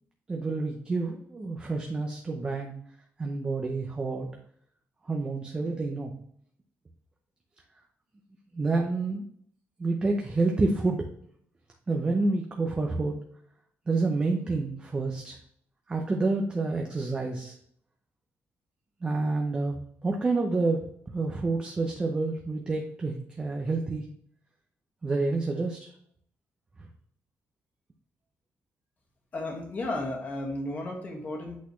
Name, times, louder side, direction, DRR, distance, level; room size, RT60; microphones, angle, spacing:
voice 1, 0.3-2.8 3.2-4.3 5.0-6.1 8.5-9.2 9.8-11.0 11.9-13.2 13.9-15.4 15.9-17.6 19.0-19.8 20.0-24.0 25.0-25.9, right 3 dB, 20° right, 1 dB, 0.6 m, -28 dB
voice 2, 29.3-31.6, left 2 dB, 35° left, 0 dB, 1.6 m, -33 dB
8.2 x 4.2 x 3.1 m, 0.66 s
wide cardioid pair, 170°, 5 cm